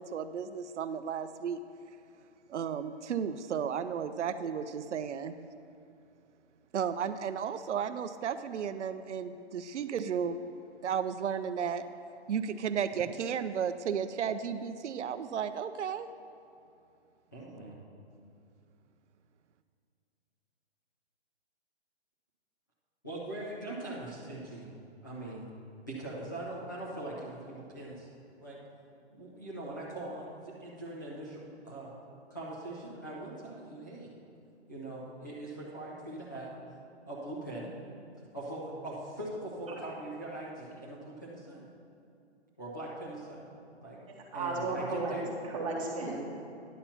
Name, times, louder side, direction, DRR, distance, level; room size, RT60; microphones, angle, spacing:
voice 1, 0.0-1.6 2.5-5.3 6.7-10.4 10.8-11.8 12.3-16.1, right 7 dB, 85° right, 10 dB, 0.6 m, -33 dB
voice 2, 17.3-17.8 23.0-24.7 25.0-25.5 25.9-28.1 28.4-28.6 29.1-31.9 32.3-34.1 34.7-36.5 37.1-37.7 38.3-41.6 42.6-43.4 43.8-44.0 44.3-45.3, right 1 dB, 15° left, -8 dB, 0.6 m, -41 dB
voice 3, 44.3-45.1 45.5-46.2, right 3 dB, 30° right, -3 dB, 1.4 m, -34 dB
10.0 x 4.2 x 7.0 m, 2.6 s
hypercardioid pair, 180°, 34 cm